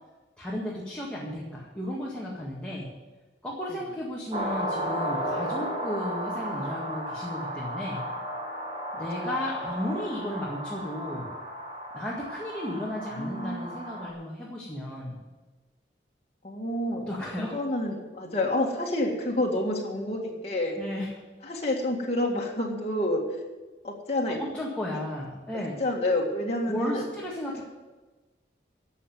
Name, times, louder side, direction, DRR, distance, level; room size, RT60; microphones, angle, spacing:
voice 1, 0.4-2.9 3.4-8.0 8.9-11.3 11.9-15.2 16.9-17.6 20.8-21.1 24.4-25.8 26.7-27.6, left 1 dB, 5° left, -5 dB, 1.8 m, -34 dB
sound 1, 4.3-14.1, equal, 30° right, 1.8 m, -34 dB
voice 2, 9.0-9.3 12.8-13.8 16.4-20.8 21.4-23.4 23.8-24.4 24.9-25.0 25.5-27.1 27.5-27.6, left 1 dB, 35° left, -3 dB, 1.9 m, -29 dB
12.0 x 7.5 x 9.3 m, 1.2 s
head